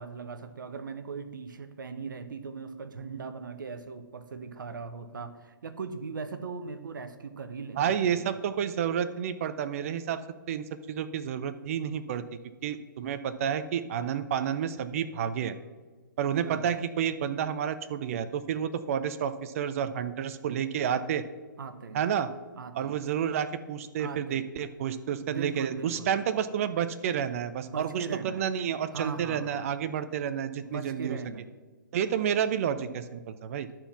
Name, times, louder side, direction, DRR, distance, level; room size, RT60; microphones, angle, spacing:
voice 1, 0.0-8.4 16.4-16.7 21.6-22.0 22.6-23.0 24.0-24.4 25.2-26.1 27.6-28.4 28.9-29.7 30.6-31.5, right 5 dB, 65° right, 10 dB, 0.9 m, -39 dB
voice 2, 7.8-10.2 10.5-12.2 12.6-15.5 16.2-21.2 21.9-22.3 22.7-31.2 31.9-33.7, right 8 dB, 40° right, 12 dB, 0.5 m, -30 dB
11.0 x 4.5 x 5.8 m, 1.4 s
figure-of-eight pair, 135°, 11 cm